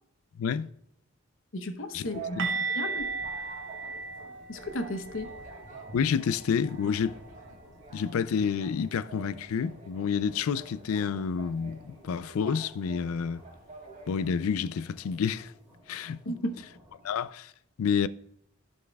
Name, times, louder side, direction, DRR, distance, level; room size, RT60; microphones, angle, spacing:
voice 1, 0.4-0.7 1.9-2.1 2.4-2.5 5.9-7.2 7.9-13.4 14.1-15.5 15.9-16.2 17.0-17.5 17.8-18.1, left 6 dB, 85° left, 0.4 m, -29 dB
voice 2, 1.5-3.1 4.5-5.4 16.2-16.6, left 1 dB, 65° left, 0.8 m, -34 dB
sound 1, 2.0-14.6, right 3 dB, 35° right, 1.5 m, -48 dB
sound 2, 2.4-8.2 8.4-8.7 9.0-9.2 12.4-12.5, right 4 dB, 60° right, 1.0 m, -37 dB
sound 3, 3.1-17.3, equal, 10° right, 2.8 m, -57 dB
15.0 x 5.5 x 2.3 m
head